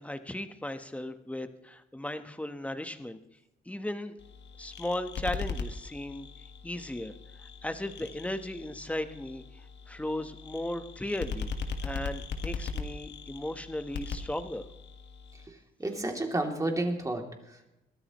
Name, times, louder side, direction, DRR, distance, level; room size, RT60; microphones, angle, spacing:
voice 1, 0.0-3.2 3.7-4.1 4.6-6.3 6.6-7.1 7.4-9.4 9.9-11.5 11.8-14.6, left 1 dB, 5° left, 9 dB, 1.2 m, -36 dB
sound 1, 4.2-15.5, left 4 dB, 60° left, 1.7 m, -40 dB
voice 2, 15.3-17.7, right 2 dB, 15° right, 2 dB, 2.9 m, -32 dB
22.0 x 14.0 x 3.1 m, 0.89 s
cardioid pair, 90°, 20 cm